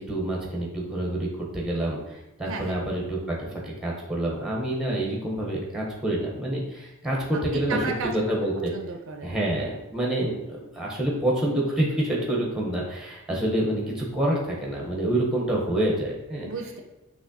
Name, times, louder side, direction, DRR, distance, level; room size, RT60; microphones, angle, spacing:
voice 1, 0.0-7.8 8.1-8.7 9.2-16.5, right 1 dB, ahead, -3 dB, 0.8 m, -27 dB
voice 2, 2.5-2.8 7.3-8.2 8.7-9.4 16.4-16.8, right 4 dB, 60° right, 3 dB, 0.5 m, -34 dB
5.9 x 2.9 x 2.7 m, 0.99 s
head